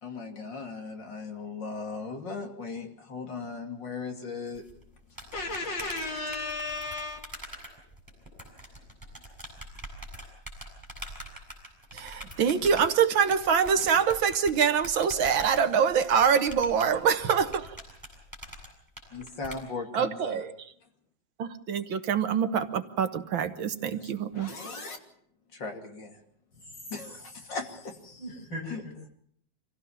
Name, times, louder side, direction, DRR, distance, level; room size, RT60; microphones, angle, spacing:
voice 1, 0.0-4.6 5.3-7.4 19.1-20.5 23.9-25.0 25.5-26.2 26.9-28.2 28.7-28.8, left 3 dB, 65° left, 4 dB, 3.4 m, -37 dB
sound 1, 4.5-19.6, equal, 10° right, 7.5 m, -44 dB
voice 2, 11.9-17.7 19.9-20.5 21.4-24.5, right 7 dB, 80° right, 10 dB, 2.0 m, -25 dB
voice 3, 26.5-27.6 28.2-28.9, equal, 80° left, -4 dB, 8.1 m, -42 dB
26.0 x 16.0 x 7.2 m, 0.65 s
omnidirectional pair, 2.2 m